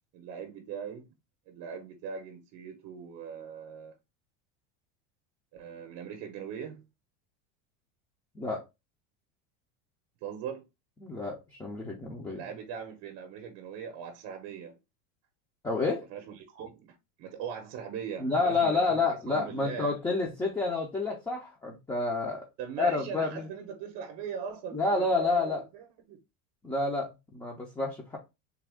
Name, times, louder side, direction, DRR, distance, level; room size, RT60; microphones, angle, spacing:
voice 1, 0.1-1.1 1.5-3.9 5.5-6.8 10.2-10.6 12.3-14.8 16.1-19.9 22.6-26.2, right 7 dB, 50° right, 0.7 m, -40 dB
voice 2, 11.0-12.4 15.6-16.0 18.2-22.4 22.8-23.5 24.7-25.6 26.6-28.2, left 3 dB, 10° left, 0.5 m, -29 dB
3.5 x 2.3 x 3.4 m
supercardioid pair, 140°, 38 cm